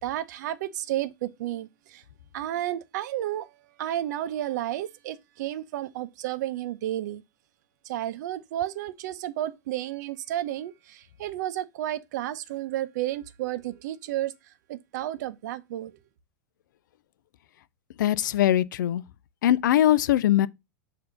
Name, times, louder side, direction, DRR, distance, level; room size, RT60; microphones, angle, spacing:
voice 1, 0.0-2.0 2.3-3.5 3.8-7.2 7.8-14.3 14.7-15.9, right 13 dB, 65° right, 0.7 m, -32 dB
voice 2, 18.0-19.0 19.4-20.5, left 12 dB, 75° left, 0.4 m, -21 dB
6.7 x 2.8 x 5.2 m
hypercardioid pair, 125°, 10 cm